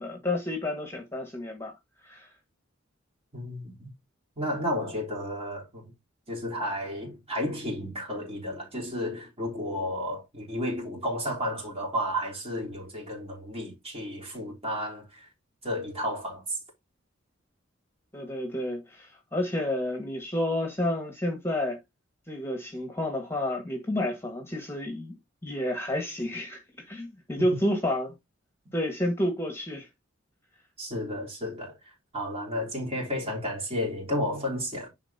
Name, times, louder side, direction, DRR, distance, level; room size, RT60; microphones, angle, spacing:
voice 1, 0.0-1.7 2.0-2.3 18.1-21.8 22.3-25.1 25.4-26.6 26.9-28.1 28.7-29.9, left 1 dB, 15° left, 1.6 m, -30 dB
voice 2, 3.3-3.9 4.4-5.9 6.3-15.3 15.6-16.6 30.8-31.8 32.1-34.9, equal, 30° right, 3.7 m, -32 dB
10.5 x 4.3 x 2.8 m
head